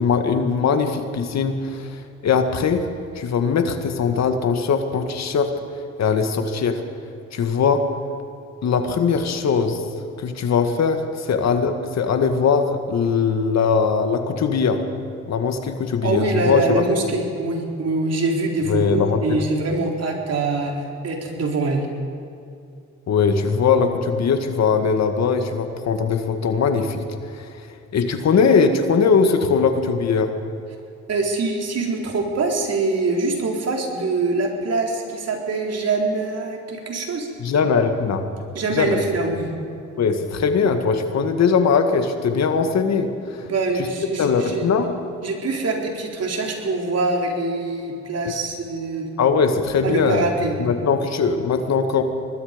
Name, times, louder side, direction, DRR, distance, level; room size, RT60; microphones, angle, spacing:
voice 1, 0.0-2.8 3.2-5.5 6.0-6.8 7.3-7.8 8.6-9.8 10.2-14.8 15.3-16.8 18.7-19.4 23.1-27.7 27.9-30.3 37.4-38.2 38.7-39.0 40.0-43.5 43.8-43.9 44.2-44.9 48.3-48.4 49.2-50.2 50.6-52.0, left 5 dB, 60° left, 6 dB, 1.9 m, -20 dB
voice 2, 16.0-21.9 31.1-37.3 38.5-39.5 43.4-44.7 45.2-49.1 49.8-50.5, right 3 dB, 55° right, 1 dB, 3.9 m, -24 dB
24.0 x 20.0 x 5.3 m, 2.5 s
cardioid pair, 90°, 30 cm